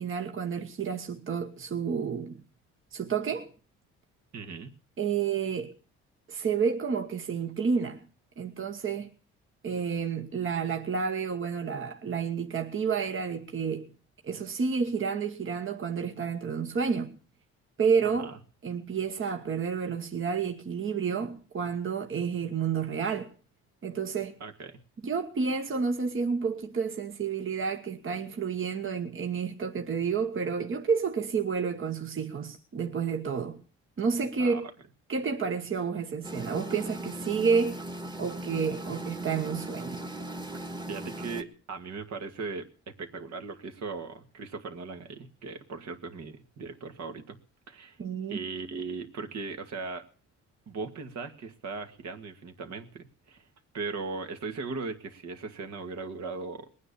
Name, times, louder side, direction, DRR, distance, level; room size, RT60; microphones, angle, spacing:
voice 1, 0.0-2.4 2.9-3.5 5.0-5.7 6.3-8.0 8.4-9.1 9.6-13.9 14.2-17.2 17.8-18.3 18.6-23.3 23.8-24.3 25.0-33.6 34.0-34.6 35.1-37.8 38.2-40.0 48.0-48.4, right 6 dB, 45° right, 1.3 m, -30 dB
voice 2, 4.3-4.7 18.2-18.4 24.4-24.8 34.4-34.6 40.9-47.4 47.7-48.0 48.3-50.1 50.7-53.5 53.7-56.7, right 4 dB, 65° right, 2.1 m, -38 dB
sound 1, 36.2-41.4, right 1 dB, 15° right, 1.5 m, -38 dB
20.0 x 9.5 x 7.0 m
cardioid pair, 90°, 30 cm